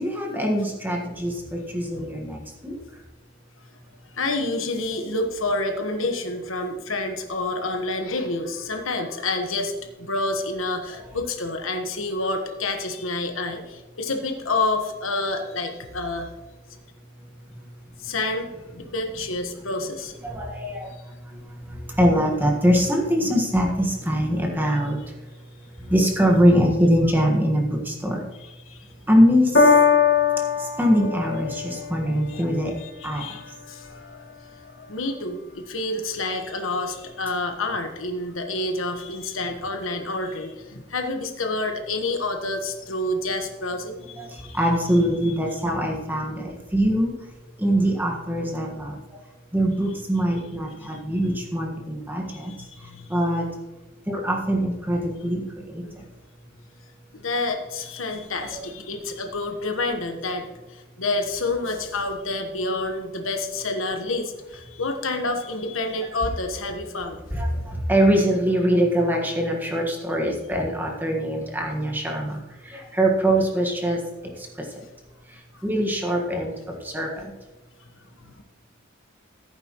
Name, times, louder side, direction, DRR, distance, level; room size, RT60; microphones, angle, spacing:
voice 1, 0.0-2.8 20.2-25.0 25.8-28.2 29.1-29.7 30.6-32.7 33.0-33.3 44.2-47.1 47.6-49.0 49.5-52.5 53.1-53.5 54.1-55.4 55.7-55.8 58.5-58.6 67.3-74.0 74.4-74.8 75.6-76.5 76.8-77.3, equal, 10° right, 0 dB, 1.5 m, -23 dB
voice 2, 1.9-2.2 4.1-16.3 18.0-20.2 28.4-28.9 32.3-32.4 32.8-34.3 34.8-44.6 44.9-45.3 45.7-46.0 50.8-51.4 52.3-53.2 57.1-67.2 78.2-78.4, left 2 dB, 85° left, 5 dB, 1.3 m, -29 dB
Piano, 29.5-36.1 36.9-37.0, left 5 dB, 60° left, 2.3 m, -24 dB
15.5 x 9.0 x 3.1 m, 1.1 s
head